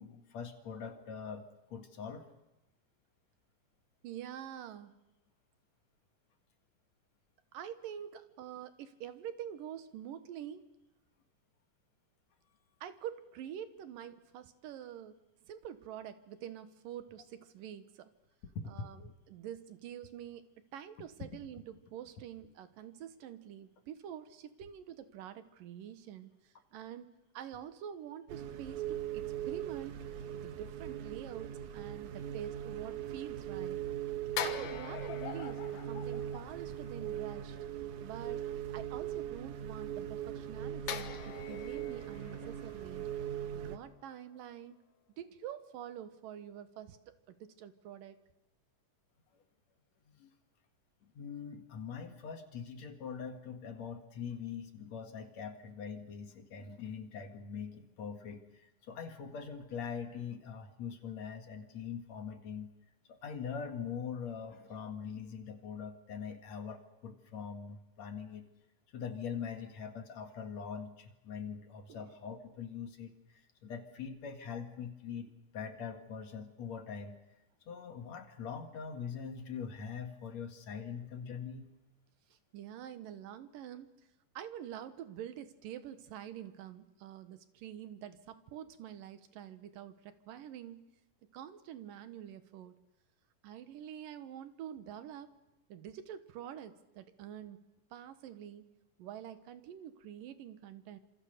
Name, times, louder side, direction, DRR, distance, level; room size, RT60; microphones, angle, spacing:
voice 1, 0.0-1.4 1.7-2.2 18.5-18.9 50.1-50.3 51.0-62.7 63.1-68.5 68.9-77.2 77.7-81.7, left 6 dB, 55° left, 6 dB, 3.0 m, -43 dB
voice 2, 4.0-5.0 7.5-10.6 12.8-15.2 15.5-18.1 18.7-30.0 30.3-33.8 34.4-37.6 38.0-38.5 38.7-43.1 43.5-44.8 45.2-48.2 71.9-72.1 82.5-83.9 84.3-90.8 91.3-92.8 93.4-95.3 95.7-97.6 97.9-98.7 99.0-101.0, right 10 dB, 90° right, 11 dB, 3.0 m, -46 dB
sound 1, 28.3-43.8, right 10 dB, 70° right, 2.7 m, -40 dB
sound 2, 34.4-37.0 40.9-44.1 44.4-44.6, left 9 dB, 80° left, 2.9 m, -43 dB
27.5 x 27.0 x 6.8 m, 0.98 s
omnidirectional pair, 3.8 m